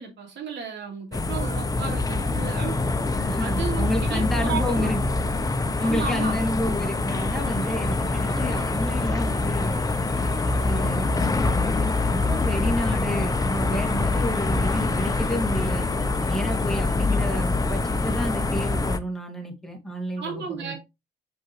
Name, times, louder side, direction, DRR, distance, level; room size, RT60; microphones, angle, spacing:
voice 1, 0.0-2.8 3.4-4.9 5.8-6.4 20.2-20.7, right 5 dB, 65° right, 3.4 m, -33 dB
sound 1, 1.1-19.0, left 2 dB, 20° left, 0.7 m, -25 dB
voice 2, 3.2-5.0 5.8-9.8 10.6-15.9 16.3-20.7, left 1 dB, ahead, 1.9 m, -30 dB
sound 2, 7.2-17.0, right 2 dB, 30° right, 2.3 m, -50 dB
6.0 x 6.0 x 3.1 m
cardioid pair, 90°, 20 cm